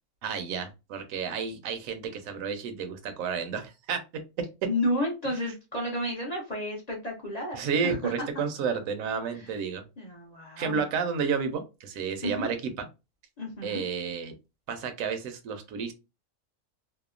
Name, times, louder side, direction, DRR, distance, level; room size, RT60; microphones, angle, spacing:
voice 1, 0.2-4.0 7.5-9.8 10.6-12.9 13.6-14.3 14.7-15.9, right 6 dB, 85° right, 8 dB, 1.0 m, -31 dB
voice 2, 4.7-8.3 9.3-9.5 10.0-10.8 12.2-12.5 13.4-13.8, left 1 dB, 45° left, -2 dB, 0.5 m, -32 dB
2.8 x 2.0 x 2.3 m, 0.26 s
omnidirectional pair, 1.4 m